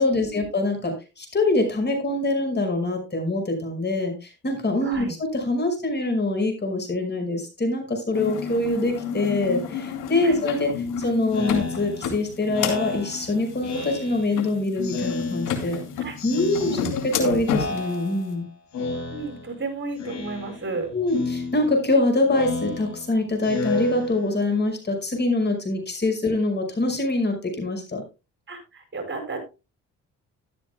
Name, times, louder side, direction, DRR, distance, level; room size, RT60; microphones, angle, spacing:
voice 1, 0.0-10.7 11.0-15.8 16.2-18.5 20.9-28.0, left 2 dB, 35° left, 5 dB, 5.5 m, -24 dB
voice 2, 4.8-5.2 10.2-10.4 16.0-16.2 16.6-16.9 19.1-20.9 28.5-29.4, right 3 dB, 40° right, 6 dB, 5.4 m, -33 dB
sound 1, 8.1-17.9, left 6 dB, 85° left, 2.6 m, -31 dB
Speech synthesizer, 11.3-14.5 14.8-15.8 16.2-17.2 17.5-18.4 18.7-19.6 20.0-20.8 21.1-24.6, left 3 dB, 65° left, 5.8 m, -32 dB
13.5 x 12.5 x 2.2 m, 0.28 s
cardioid pair, 90°, 30 cm